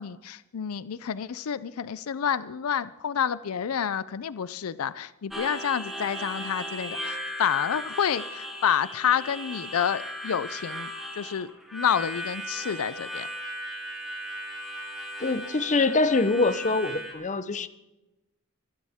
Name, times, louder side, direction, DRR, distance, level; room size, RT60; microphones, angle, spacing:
voice 1, 0.0-13.3, left 8 dB, 80° left, 17 dB, 0.5 m, -29 dB
Harmonica, 5.3-17.1, equal, ahead, 3.5 m, -37 dB
voice 2, 15.2-17.7, left 3 dB, 35° left, 13 dB, 0.8 m, -24 dB
24.5 x 12.5 x 3.6 m, 1.0 s
head